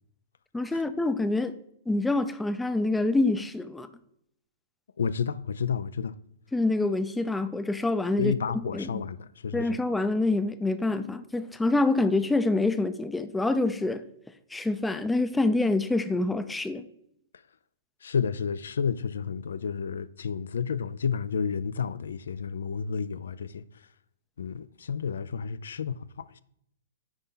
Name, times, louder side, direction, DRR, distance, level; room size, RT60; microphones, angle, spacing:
voice 1, 0.5-1.5 1.9-3.9 6.5-8.3 8.7-9.0 9.5-14.0 14.5-16.9, left 2 dB, 5° left, 0.4 m, -26 dB
voice 2, 5.0-6.2 8.2-9.8 18.0-23.6 24.4-26.4, left 6 dB, 85° left, 0.3 m, -31 dB
9.7 x 4.0 x 3.8 m
hypercardioid pair, 140°, 0 cm